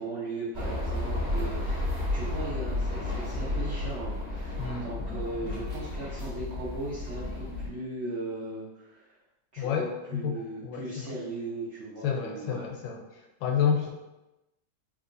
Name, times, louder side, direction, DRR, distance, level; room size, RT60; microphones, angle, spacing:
voice 1, 0.0-9.1 9.5-12.6, right 2 dB, 60° right, -8 dB, 0.7 m, -38 dB
sound 1, 0.5-7.7, left 2 dB, 30° right, 1.0 m, -32 dB
voice 2, 4.6-5.2 5.4-5.6 9.6-11.1 12.0-13.0 13.4-13.9, left 7 dB, 80° left, 0 dB, 1.2 m, -30 dB
3.7 x 2.7 x 2.5 m, 1.0 s
omnidirectional pair, 2.0 m